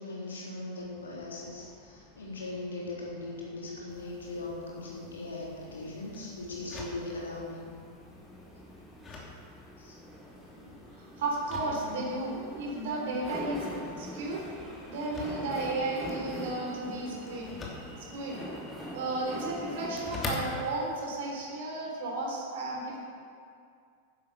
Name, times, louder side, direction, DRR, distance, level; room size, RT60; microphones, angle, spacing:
voice 1, 0.0-7.7 9.1-9.2 9.8-9.9 10.6-10.7, left 2 dB, 70° left, -4 dB, 3.4 m, -39 dB
sound 1, 0.8-20.5, equal, ahead, 3.8 m, -45 dB
sound 2, 3.9-21.0, left 3 dB, 25° left, 2.7 m, -46 dB
voice 2, 11.0-14.4 14.8-17.5 18.0-18.4 18.9-23.0, right 2 dB, 55° right, -1 dB, 3.6 m, -34 dB
11.0 x 10.5 x 6.7 m, 2.3 s
figure-of-eight pair, 90°, 0 cm